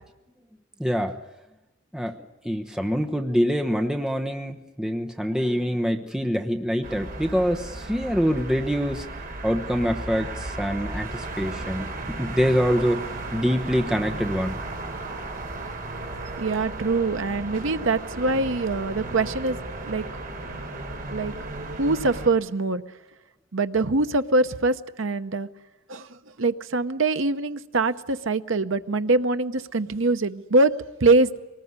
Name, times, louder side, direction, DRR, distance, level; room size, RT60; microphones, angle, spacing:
voice 1, 0.8-1.2 1.9-9.1 9.4-13.0 13.3-14.6, equal, 5° right, 4 dB, 1.1 m, -25 dB
sound 1, 6.8-22.3, right 2 dB, 45° right, 3.5 m, -35 dB
voice 2, 16.4-19.6 19.8-20.0 21.1-21.3 21.8-22.8 23.5-25.5 25.9-30.7 31.0-31.4, right 3 dB, 80° right, 10 dB, 0.9 m, -23 dB
23.5 x 19.5 x 9.6 m, 0.99 s
head